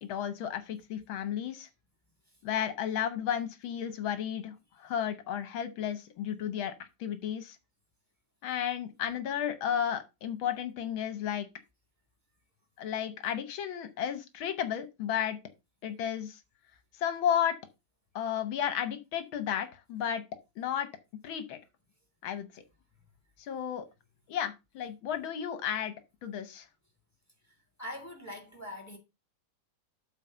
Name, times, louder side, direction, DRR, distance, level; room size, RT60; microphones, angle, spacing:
voice 1, 0.0-1.7 2.4-7.6 8.4-11.5 12.8-15.4 15.8-16.4 17.0-17.6 18.2-20.2 20.6-20.9 21.2-21.6 22.2-22.6 23.4-23.8 24.3-25.9 26.2-26.7, left 9 dB, 75° left, 1.7 m, -33 dB
voice 2, 27.4-29.0, left 1 dB, 10° left, 2.0 m, -43 dB
8.2 x 3.9 x 6.7 m
omnidirectional pair, 2.2 m